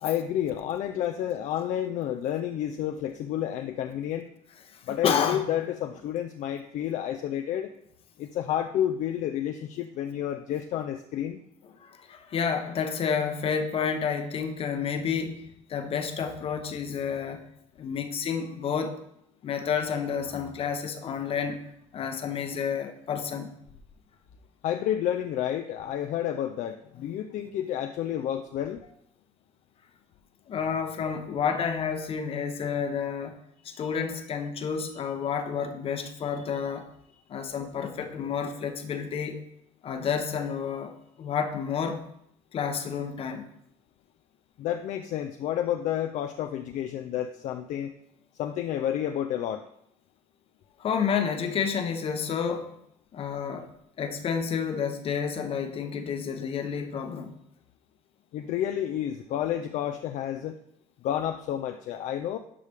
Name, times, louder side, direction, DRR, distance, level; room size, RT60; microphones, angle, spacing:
voice 1, 0.0-4.3 4.9-7.7 8.2-11.4 24.6-28.8 44.6-47.9 48.4-49.6 58.3-60.6 61.0-62.4, left 10 dB, 60° left, 0.5 m, -30 dB
voice 2, 4.7-5.4 11.8-17.4 17.8-19.0 19.4-21.6 21.9-23.5 30.5-33.4 33.6-36.9 37.3-39.5 39.8-42.1 42.5-43.4 50.8-52.8 53.1-53.7 54.0-57.3, left 6 dB, 40° left, 0.9 m, -30 dB
12.0 x 4.9 x 3.4 m
cardioid pair, 135°, 14 cm